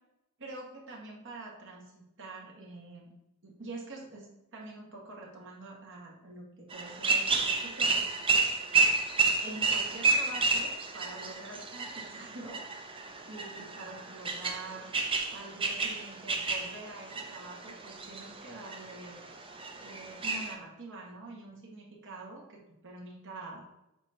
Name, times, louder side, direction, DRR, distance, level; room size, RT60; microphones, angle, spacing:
voice 1, 0.4-3.1 3.4-8.1 9.4-12.7 13.3-14.9 15.3-19.2 19.8-23.6, right 2 dB, 60° right, -3 dB, 1.8 m, -46 dB
sound 1, 6.7-20.5, right 4 dB, 25° right, 0.7 m, -31 dB
8.0 x 2.9 x 5.0 m, 0.90 s
head